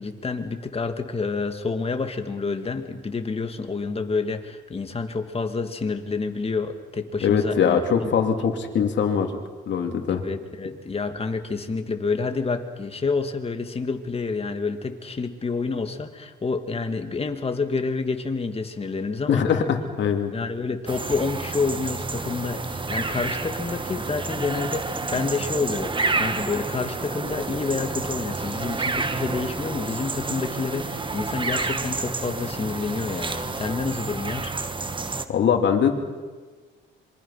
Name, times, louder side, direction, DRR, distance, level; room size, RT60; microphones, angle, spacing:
voice 1, 0.0-8.1 10.1-19.4 20.3-34.5, left 4 dB, 30° left, 6 dB, 2.5 m, -28 dB
voice 2, 7.2-9.3 9.7-10.2 19.3-20.3 35.3-35.9, left 7 dB, 65° left, 4 dB, 3.0 m, -22 dB
sound 1, 20.9-35.3, right 3 dB, 25° right, 1.5 m, -29 dB
26.5 x 24.0 x 5.9 m, 1.4 s
cardioid pair, 90°, 20 cm